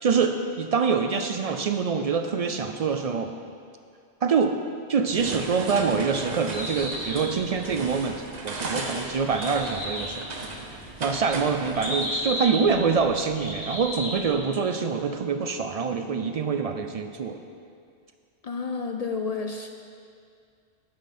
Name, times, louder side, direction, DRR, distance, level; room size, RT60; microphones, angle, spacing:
voice 1, 0.0-3.4 4.2-4.6 4.9-10.3 11.0-17.4, right 5 dB, 60° right, 7 dB, 0.4 m, -25 dB
sound 1, 5.1-12.1, right 2 dB, 40° right, 0.9 m, -35 dB
Bird, 6.4-14.3, left 1 dB, 80° left, 3.1 m, -35 dB
voice 2, 18.4-19.7, left 4 dB, 55° left, 4 dB, 0.4 m, -30 dB
11.0 x 8.2 x 4.2 m, 2.3 s
omnidirectional pair, 1.1 m